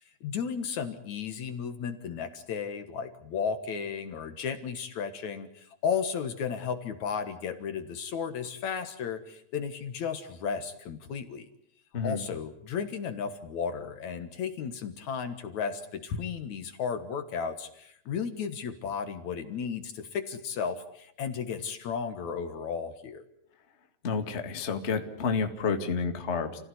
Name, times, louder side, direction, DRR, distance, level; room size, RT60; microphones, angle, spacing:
voice 1, 0.0-11.5 12.0-23.2, left 6 dB, 60° left, 10 dB, 2.6 m, -34 dB
voice 2, 24.0-26.6, left 5 dB, 25° left, 6 dB, 1.8 m, -30 dB
29.5 x 16.5 x 9.6 m, 0.69 s
omnidirectional pair, 4.0 m